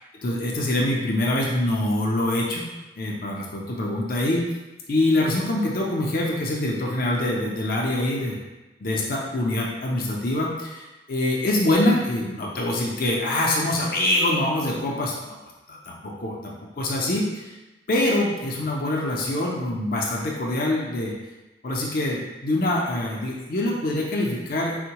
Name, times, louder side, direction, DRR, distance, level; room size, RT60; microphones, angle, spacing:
voice 1, 0.2-2.7 3.0-4.4 4.9-8.4 8.8-15.4 15.7-17.5 17.9-21.1 21.6-24.8, left 1 dB, 55° left, -3 dB, 0.5 m, -24 dB
4.4 x 2.1 x 2.8 m, 1.1 s
head